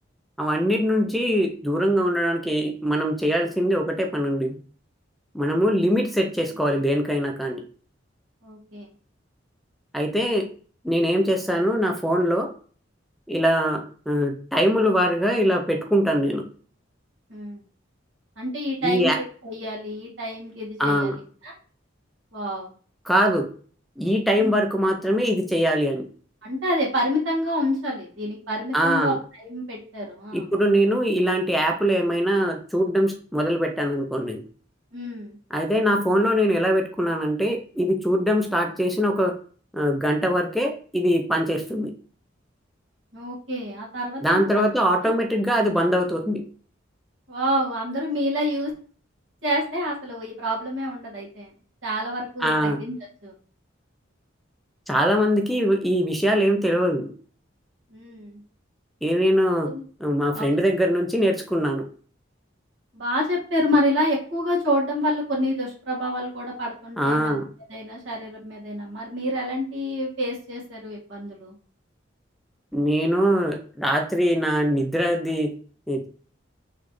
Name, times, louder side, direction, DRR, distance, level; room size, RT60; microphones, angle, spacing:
voice 1, 0.4-4.6 5.3-7.6 9.9-10.5 10.8-12.5 13.3-16.4 18.8-19.2 20.8-21.2 23.0-23.5 24.0-26.1 28.7-29.2 30.3-34.4 35.5-39.3 39.7-41.9 44.2-46.4 52.4-52.8 54.9-57.1 59.0-59.7 60.0-61.9 67.0-67.5 72.7-75.5 75.9-76.1, equal, ahead, 3 dB, 0.4 m, -22 dB
voice 2, 8.4-8.9 17.3-17.6 18.4-21.5 22.3-22.7 24.4-24.5 26.4-30.4 34.9-35.4 43.1-44.6 45.0-45.1 47.3-48.7 49.4-51.5 51.8-52.9 53.2-53.3 57.9-58.4 59.7-59.8 60.3-60.5 62.9-67.3 67.7-71.5, equal, 70° right, -3 dB, 1.7 m, -28 dB
4.1 x 3.1 x 3.0 m, 0.42 s
head